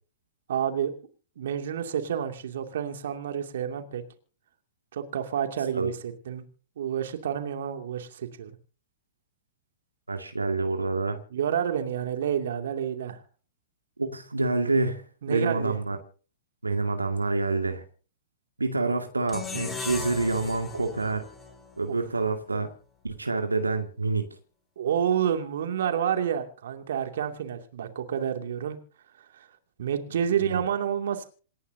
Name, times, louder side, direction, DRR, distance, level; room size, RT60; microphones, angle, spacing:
voice 1, 0.5-0.9 1.4-4.0 4.9-6.4 6.8-8.5 11.3-13.2 15.2-15.8 21.9-22.0 24.8-28.8 29.2-29.5 29.8-31.2, right 9 dB, 65° right, 6 dB, 2.6 m, -29 dB
voice 2, 10.1-11.2 14.0-16.0 16.6-17.8 18.6-21.2 21.8-22.7 23.0-24.3 30.4-30.6, right 3 dB, 85° right, 5 dB, 2.1 m, -27 dB
sound 1, 19.3-22.5, left 4 dB, 15° left, 4.3 m, -38 dB
28.0 x 11.5 x 2.8 m, 0.39 s
figure-of-eight pair, 105°, 0 cm